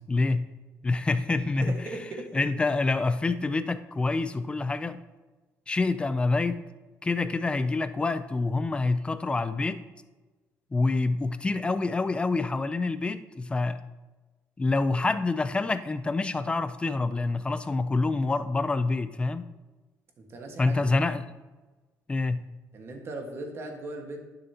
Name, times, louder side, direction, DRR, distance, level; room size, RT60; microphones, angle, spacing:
voice 1, 0.1-0.5 0.8-1.9 2.3-5.0 5.7-6.6 7.0-9.8 10.7-13.8 14.6-19.5 20.6-21.2 22.1-22.5, left 3 dB, 15° left, 12 dB, 0.5 m, -27 dB
voice 2, 1.6-2.3 20.2-20.8 22.7-24.2, right 2 dB, 45° right, 2 dB, 1.6 m, -38 dB
10.5 x 6.6 x 2.9 m, 1.2 s
cardioid pair, 115°, 6 cm